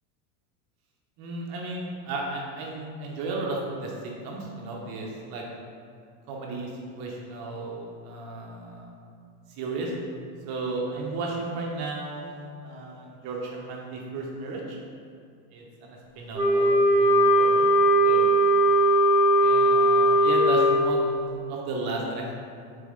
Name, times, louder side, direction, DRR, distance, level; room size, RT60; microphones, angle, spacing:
voice 1, 1.2-5.4 6.3-8.9 9.5-9.9 10.5-14.8 15.5-17.7 18.0-18.5 19.4-22.3, right 2 dB, 50° right, -1 dB, 0.9 m, -34 dB
Wind instrument woodwind instrument, 16.3-20.8, right 1 dB, 10° right, 0.5 m, -19 dB
3.7 x 3.5 x 3.2 m, 2.2 s
supercardioid pair, 130°, 47 cm